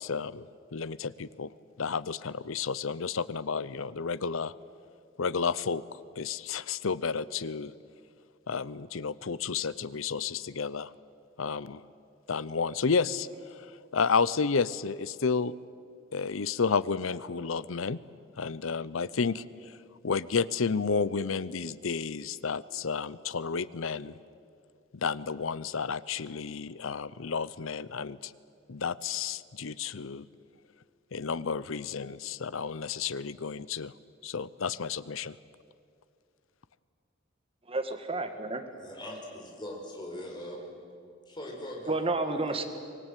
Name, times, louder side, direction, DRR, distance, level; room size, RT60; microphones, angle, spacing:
voice 1, 0.0-1.5 1.8-4.5 5.2-7.7 8.5-10.9 11.4-11.8 12.3-15.5 16.1-18.0 18.4-19.7 20.0-24.1 24.9-28.3 28.7-30.3 31.1-33.9 34.2-35.4, left 5 dB, 85° left, 18 dB, 0.7 m, -31 dB
voice 2, 37.7-38.6 41.9-42.6, right 2 dB, 30° right, 6 dB, 1.7 m, -30 dB
voice 3, 38.8-40.7 41.3-42.5, left 1 dB, 25° left, -1 dB, 4.8 m, -41 dB
24.5 x 19.0 x 9.1 m, 2.3 s
head